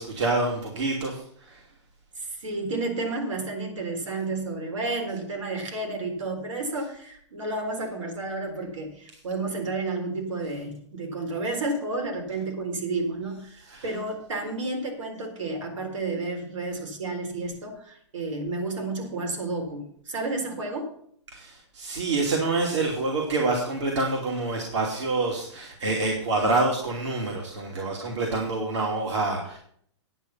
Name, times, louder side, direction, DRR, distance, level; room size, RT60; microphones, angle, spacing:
voice 1, 0.0-1.6 13.7-13.9 21.3-29.6, right 3 dB, 70° right, -1 dB, 2.9 m, -27 dB
voice 2, 2.2-20.9, right 2 dB, 90° right, 3 dB, 4.1 m, -31 dB
10.0 x 9.2 x 5.7 m, 0.62 s
hypercardioid pair, 175°, 16 cm